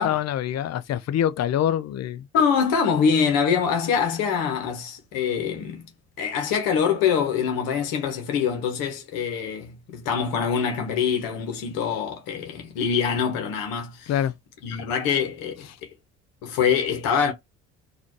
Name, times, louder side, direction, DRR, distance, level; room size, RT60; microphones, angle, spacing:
voice 1, 0.0-2.3 14.1-14.3, left 10 dB, 45° left, 0.7 m, -25 dB
voice 2, 2.3-5.9 6.2-14.1 14.6-15.7 16.4-17.3, left 7 dB, 70° left, 1.3 m, -24 dB
4.0 x 2.7 x 3.1 m
hypercardioid pair, 65°, 35 cm